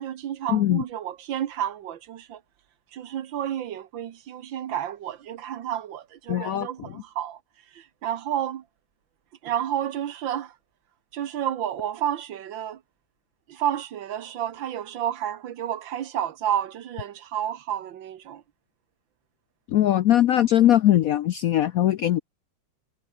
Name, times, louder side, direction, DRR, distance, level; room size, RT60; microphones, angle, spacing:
voice 1, 0.0-2.4 2.9-7.4 7.8-8.6 9.4-10.5 11.1-12.8 13.5-18.4, right 10 dB, 85° right, 1.8 m, -30 dB
voice 2, 0.5-0.8 6.3-6.7 19.7-22.2, left 12 dB, 70° left, 0.8 m, -20 dB
omnidirectional pair, 2.1 m